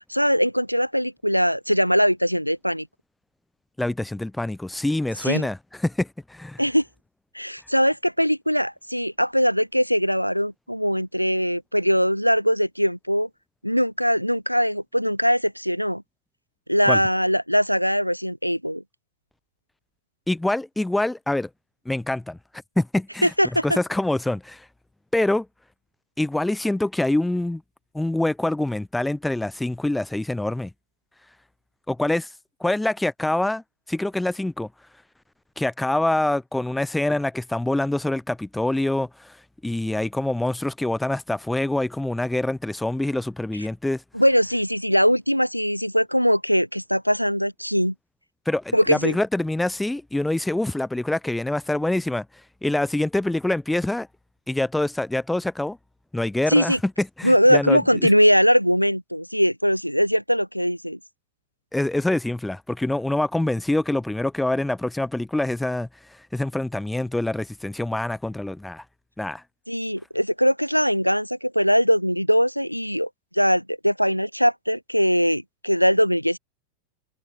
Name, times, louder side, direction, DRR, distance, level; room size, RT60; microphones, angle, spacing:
voice 1, 0.0-2.9 5.2-5.5 6.6-6.8 7.3-13.3 13.6-16.0 16.7-18.8 23.2-23.8 44.1-47.9 48.7-49.2 56.5-56.8 57.2-61.0 69.7-76.4, equal, 90° left, 2.0 m, -21 dB
voice 2, 3.8-6.6 16.9-17.0 20.3-21.5 21.9-22.4 22.8-23.3 23.6-24.7 25.1-25.5 26.2-27.6 27.9-30.7 31.9-32.3 32.6-33.6 33.9-34.7 35.6-39.4 39.6-44.0 48.5-52.3 52.6-54.1 54.5-55.8 56.1-58.1 61.7-68.8 69.2-69.4, left 1 dB, 5° left, 2.2 m, -25 dB
figure-of-eight pair, 90°, 0 cm